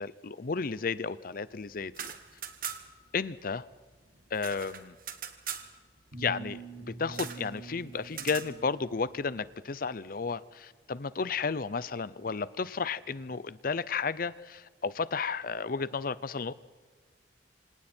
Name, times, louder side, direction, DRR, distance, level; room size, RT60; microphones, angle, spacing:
voice 1, 0.0-2.2 3.1-3.7 4.3-5.0 6.2-6.6 6.9-16.5, left 5 dB, 50° left, 0.6 m, -33 dB
sound 1, 1.8-3.1 3.3-3.4 3.7-5.7 7.1-7.4 8.1-8.5, right 8 dB, 50° right, 2.0 m, -40 dB
sound 2, 6.1-9.3, right 3 dB, 80° right, 6.8 m, -45 dB
28.0 x 26.5 x 4.4 m
head